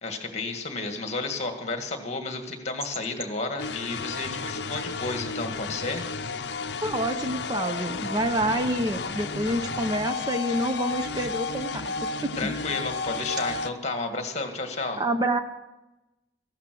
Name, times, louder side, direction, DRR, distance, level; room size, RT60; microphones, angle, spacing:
voice 1, 0.0-6.1 12.3-15.0, left 3 dB, 35° left, 5 dB, 1.9 m, -32 dB
sound 1, 3.6-13.7, left 4 dB, 60° left, 0.7 m, -32 dB
voice 2, 6.8-12.1 12.4-12.5 15.0-15.4, right 1 dB, 20° right, 8 dB, 0.6 m, -27 dB
15.0 x 12.0 x 6.1 m, 1.0 s
head